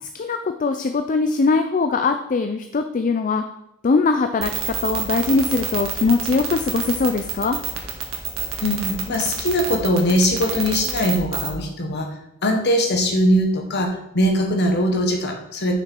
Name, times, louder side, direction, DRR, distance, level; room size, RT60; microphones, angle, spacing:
voice 1, 0.0-3.4 3.8-7.6, left 4 dB, 40° left, 7 dB, 0.4 m, -21 dB
sound 1, 4.4-11.5, right 8 dB, 75° right, 1.5 m, -27 dB
voice 2, 8.6-15.8, equal, 55° left, 3 dB, 1.4 m, -21 dB
6.7 x 5.9 x 4.5 m, 0.84 s
head